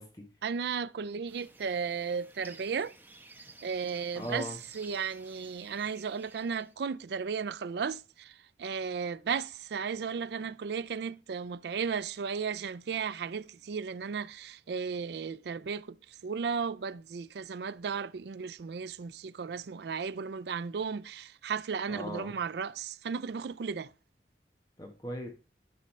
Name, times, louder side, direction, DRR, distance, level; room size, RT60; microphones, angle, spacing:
voice 1, 0.4-2.9 3.6-23.9, right 6 dB, 70° right, 0.4 m, -35 dB
sound 1, 1.3-6.7, right 3 dB, 10° right, 0.9 m, -54 dB
voice 2, 4.1-4.6 21.9-22.3 24.8-25.3, equal, 20° left, 1.3 m, -38 dB
11.5 x 5.3 x 3.2 m
head